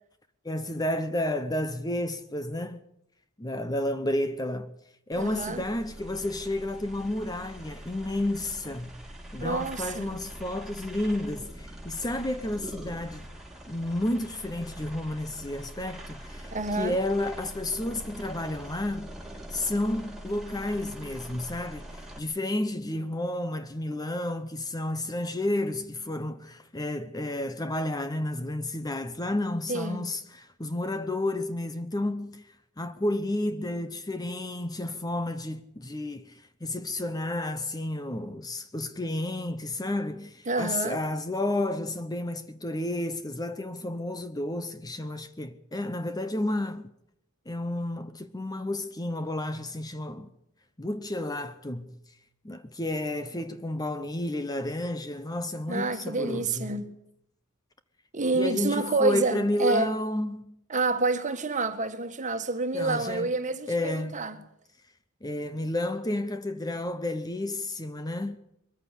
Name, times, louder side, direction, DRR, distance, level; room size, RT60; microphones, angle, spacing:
voice 1, 0.4-2.8 3.4-4.7 5.1-8.9 9.3-13.3 13.7-19.2 19.5-46.9 47.5-50.3 50.8-51.9 52.4-56.7 58.3-60.6 62.7-63.3 63.7-64.2 65.2-68.4, left 1 dB, 20° left, 0.8 m, -31 dB
sound 1, 5.1-22.2, right 1 dB, ahead, 3.3 m, -43 dB
voice 2, 5.2-5.6 9.4-10.2 16.5-17.0 29.7-30.0 40.5-41.0 55.7-56.9 58.1-59.9 60.7-64.4, right 3 dB, 35° right, 1.7 m, -28 dB
22.0 x 14.5 x 8.3 m
head